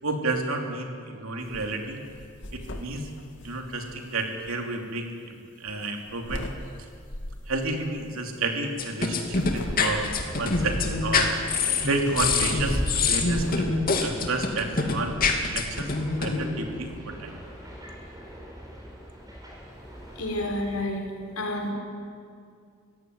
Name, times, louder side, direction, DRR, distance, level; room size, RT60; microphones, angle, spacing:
voice 1, 0.0-2.0 2.5-3.1 3.4-6.5 7.5-11.3 11.8-15.1 15.5-15.9 16.2-17.4, right 2 dB, 75° right, 3 dB, 3.0 m, -31 dB
sound 1, 1.4-1.7 2.0-4.5 5.7-6.6 7.1-7.5 9.1-10.2 11.8-13.6, left 1 dB, 60° left, 1.9 m, -38 dB
sound 2, 8.8-16.4, left 4 dB, 45° left, 2.5 m, -25 dB
sound 3, 9.9-20.8, equal, 20° right, 6.9 m, -38 dB
voice 2, 20.2-21.1 21.4-21.7, left 1 dB, 85° left, 2 dB, 4.3 m, -29 dB
25.0 x 16.0 x 9.5 m, 2.3 s
head